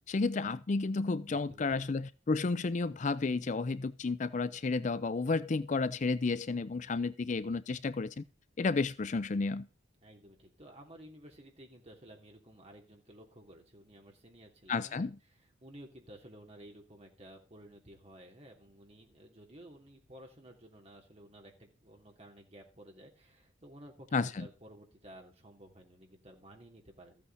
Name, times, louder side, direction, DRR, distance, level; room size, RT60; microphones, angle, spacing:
voice 1, 0.1-8.3 8.6-9.7 14.7-15.2 24.1-24.5, left 3 dB, 40° left, 0.4 m, -32 dB
voice 2, 1.3-1.8 10.0-15.1 15.6-27.2, right 1 dB, 30° right, 3.0 m, -54 dB
14.0 x 8.5 x 4.1 m
head